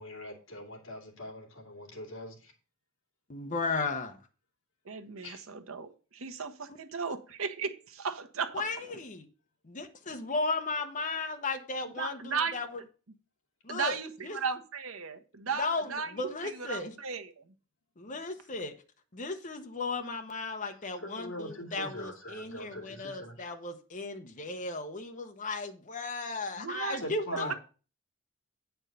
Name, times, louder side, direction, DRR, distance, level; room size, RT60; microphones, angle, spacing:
voice 1, 0.0-2.5 5.2-5.5 13.7-13.8 20.9-23.5 27.0-27.5, left 1 dB, 60° left, 2.4 m, -42 dB
voice 2, 3.3-4.2 8.5-9.3 9.6-12.7 13.6-14.0 14.2-14.4 15.6-16.9 18.0-18.7 19.1-27.5, left 3 dB, 35° left, 0.9 m, -35 dB
voice 3, 4.8-8.7 12.0-12.5 13.7-17.5 26.6-27.0, right 5 dB, 75° right, 1.0 m, -36 dB
8.9 x 4.5 x 6.7 m
head